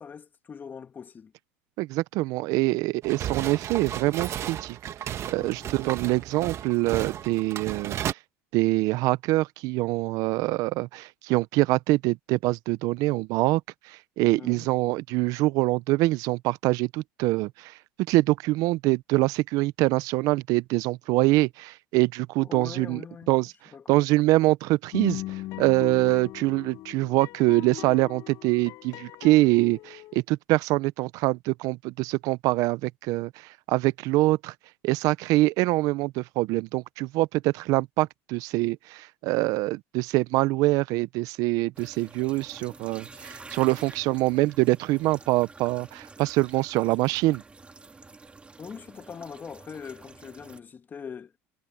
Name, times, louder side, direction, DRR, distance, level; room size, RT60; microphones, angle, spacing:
voice 1, 0.0-1.3 5.3-5.7 14.4-14.7 22.4-23.3 23.7-24.1 48.6-51.3, left 6 dB, 30° left, 2.7 m, -42 dB
voice 2, 1.8-4.8 5.3-8.0 8.5-13.6 13.9-17.7 18.1-23.0 23.3-23.5 23.9-25.2 25.6-33.3 33.7-34.5 34.8-47.4, right 20 dB, 65° right, 0.8 m, -24 dB
sound 1, 3.0-8.1, right 10 dB, 45° right, 1.7 m, -34 dB
sound 2, 24.9-30.2, left 17 dB, 60° left, 4.9 m, -38 dB
sound 3, 41.7-50.6, right 3 dB, 20° right, 2.0 m, -48 dB
supercardioid pair, 95°, 6 cm